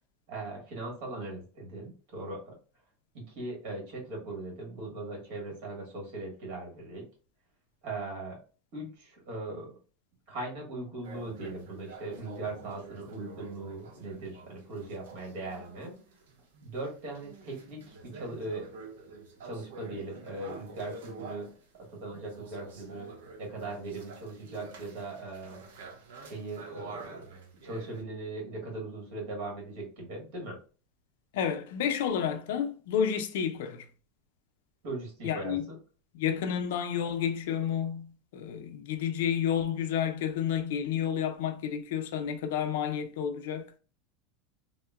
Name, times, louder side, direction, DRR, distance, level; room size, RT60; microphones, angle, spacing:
voice 1, 0.3-2.5 3.1-7.0 7.8-8.4 8.7-9.7 10.3-15.9 16.6-18.7 19.4-21.5 21.8-23.1 23.4-25.6 26.2-27.2 27.6-30.6 34.8-35.8, right 2 dB, 60° right, 1.4 m, -39 dB
sound 1, 11.0-21.6 22.1-28.0, right 3 dB, 90° right, 0.7 m, -48 dB
voice 2, 31.3-33.9 35.2-35.6 36.1-43.8, left 8 dB, 75° left, 0.4 m, -30 dB
3.6 x 2.1 x 2.3 m
supercardioid pair, 140°, 0 cm